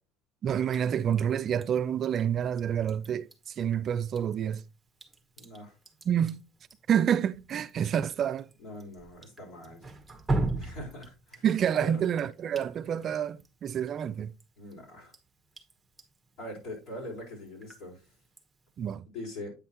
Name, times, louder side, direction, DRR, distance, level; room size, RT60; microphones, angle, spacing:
voice 1, 0.4-4.6 6.1-6.4 6.9-8.5 11.4-14.3 18.8-19.0, right 9 dB, 45° right, 0.4 m, -28 dB
Drip, 0.7-18.9, right 2 dB, 10° right, 1.2 m, -41 dB
voice 2, 5.4-5.8 8.6-9.8 10.6-11.4 11.7-12.0 14.6-15.1 16.4-18.1 19.1-19.5, left 1 dB, 65° left, 4.3 m, -42 dB
8.6 x 5.4 x 2.9 m
cardioid pair, 130°, 0 cm